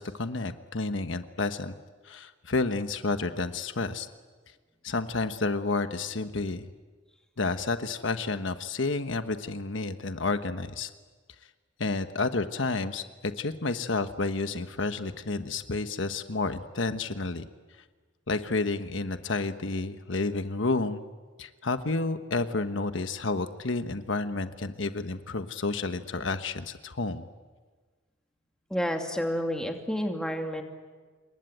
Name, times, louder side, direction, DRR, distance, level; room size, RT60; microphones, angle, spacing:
voice 1, 0.0-1.7 2.0-4.1 4.8-6.7 7.4-10.9 11.8-17.4 18.3-21.0 21.4-27.3, left 3 dB, 70° left, 9 dB, 1.2 m, -30 dB
voice 2, 28.7-30.6, equal, 5° left, 3 dB, 2.7 m, -30 dB
28.0 x 22.5 x 9.2 m, 1.4 s
head